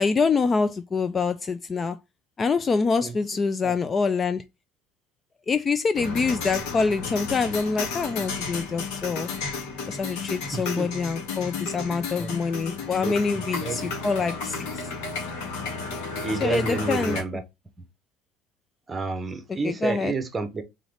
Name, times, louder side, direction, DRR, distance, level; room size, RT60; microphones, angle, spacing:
voice 1, 0.0-2.0 2.4-4.4 5.5-9.3 9.8-14.5 16.4-17.2 19.5-20.1, left 4 dB, 20° left, 0.3 m, -25 dB
voice 2, 3.0-3.7 10.5-10.9 12.2-12.4 13.0-13.9 16.2-17.4 18.9-20.6, right 4 dB, 15° right, 1.0 m, -30 dB
sound 1, 5.9-17.2, left 4 dB, 80° left, 2.0 m, -33 dB
4.0 x 3.8 x 3.3 m
cardioid pair, 140°, 0 cm